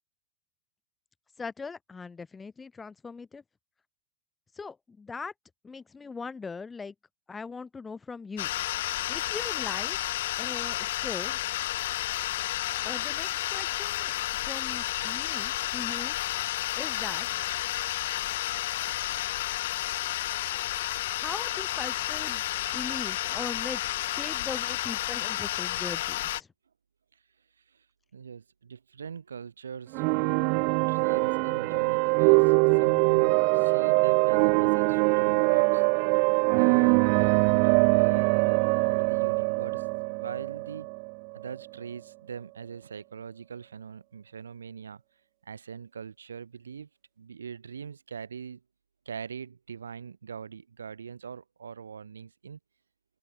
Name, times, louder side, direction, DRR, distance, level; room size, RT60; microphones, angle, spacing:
voice 1, 1.4-3.4 4.5-5.3 5.6-6.9 7.3-8.5 9.1-10.0 10.4-11.4 12.8-14.1 14.4-16.2 16.8-17.5 21.2-22.4 22.7-26.5, left 4 dB, 15° left, 7.8 m, -40 dB
sound 1, 8.4-26.4, left 15 dB, 55° left, 0.6 m, -31 dB
voice 2, 28.1-35.8 36.5-40.9 41.3-45.0 45.4-46.9 47.2-48.6 49.0-52.6, right 6 dB, 70° right, 6.7 m, -42 dB
sound 2, 29.9-41.6, right 40 dB or more, 45° right, 0.4 m, -23 dB
open air
figure-of-eight pair, 90°, 0 cm